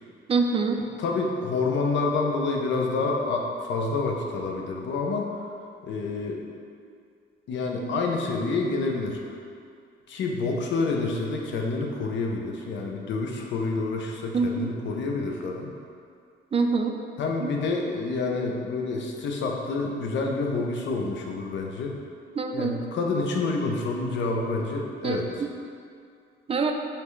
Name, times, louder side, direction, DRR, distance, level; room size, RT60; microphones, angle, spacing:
voice 1, 0.3-0.8 14.3-14.7 16.5-17.0 17.4-17.5 22.4-22.8 25.0-25.2 26.5-26.7, right 4 dB, 30° right, 4 dB, 0.4 m, -24 dB
voice 2, 1.0-5.4 5.8-6.4 7.5-9.4 10.1-15.7 17.2-22.0 22.5-25.5, left 3 dB, 70° left, 1 dB, 0.6 m, -28 dB
5.7 x 2.2 x 3.1 m, 2.3 s
cardioid pair, 90°, 20 cm